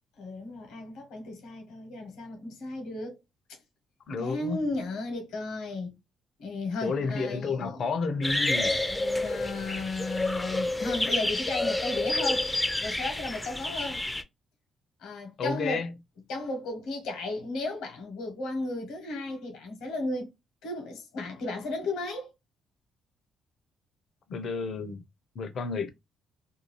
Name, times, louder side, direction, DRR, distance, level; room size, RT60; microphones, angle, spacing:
voice 1, 0.2-3.1 3.5-3.6 4.2-6.0 6.4-7.9 8.7-12.5 12.8-14.1 15.0-15.9 16.3-20.3 20.6-22.3, left 2 dB, 90° left, 1.1 m, -34 dB
voice 2, 4.1-4.6 6.8-8.8 15.4-15.9 24.3-25.0 25.3-25.9, left 4 dB, 60° left, 0.6 m, -31 dB
sound 1, 8.2-14.2, left 1 dB, 10° left, 0.5 m, -29 dB
2.6 x 2.3 x 3.1 m
cardioid pair, 90°, 0 cm